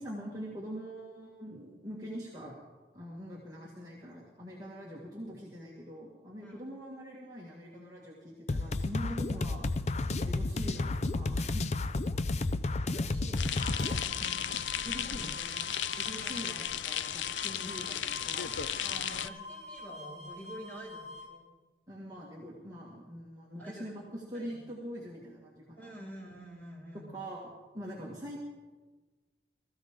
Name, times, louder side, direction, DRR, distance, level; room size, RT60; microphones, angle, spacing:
voice 1, 0.0-2.6 2.9-9.6 10.2-11.7 14.2-14.4 14.8-18.6 21.9-26.1 27.1-27.5 27.7-28.4, equal, 20° right, -5 dB, 2.0 m, -43 dB
sound 1, 8.5-14.0, left 2 dB, 35° left, 0.5 m, -31 dB
voice 2, 10.0-10.4 12.8-14.3 14.8-15.3 16.2-16.5 18.8-21.4 23.6-24.1 24.3-24.6 25.8-27.1 27.8-28.1, right 1 dB, 10° left, -5 dB, 5.8 m, -48 dB
sound 2, 13.4-19.3, left 10 dB, 85° left, 0.5 m, -35 dB
sound 3, 13.6-21.3, left 1 dB, 40° right, 3.0 m, -46 dB
21.5 x 14.5 x 3.8 m, 1.3 s
head